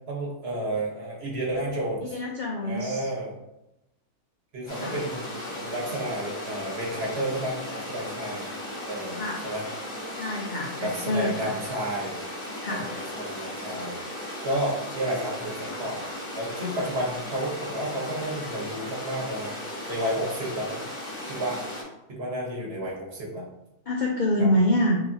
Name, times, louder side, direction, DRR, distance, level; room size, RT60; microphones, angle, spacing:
voice 1, 0.1-2.1 2.6-3.4 4.5-8.5 8.9-9.6 10.8-12.2 12.7-12.9 13.2-14.0 14.4-16.0 16.3-19.5 19.9-20.8 21.3-21.6 22.1-23.5 24.4-24.5, right 1 dB, 45° right, -3 dB, 1.4 m, -31 dB
voice 2, 2.0-3.1 4.7-5.0 9.1-9.5 10.1-11.5 12.6-12.9 23.9-25.0, left 1 dB, 80° left, -1 dB, 0.4 m, -26 dB
sound 1, 4.7-21.8, left 1 dB, 20° left, 1.6 m, -36 dB
5.9 x 2.9 x 2.8 m, 0.89 s
omnidirectional pair, 1.6 m